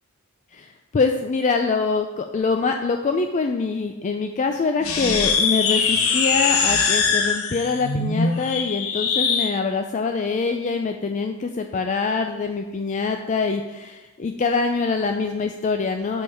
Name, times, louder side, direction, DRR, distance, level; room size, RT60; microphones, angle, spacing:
voice 1, 0.5-16.2, left 4 dB, 35° left, 5 dB, 0.3 m, -24 dB
sound 1, 4.8-9.5, left 5 dB, 70° left, 0.9 m, -22 dB
6.4 x 5.4 x 5.5 m, 1.1 s
head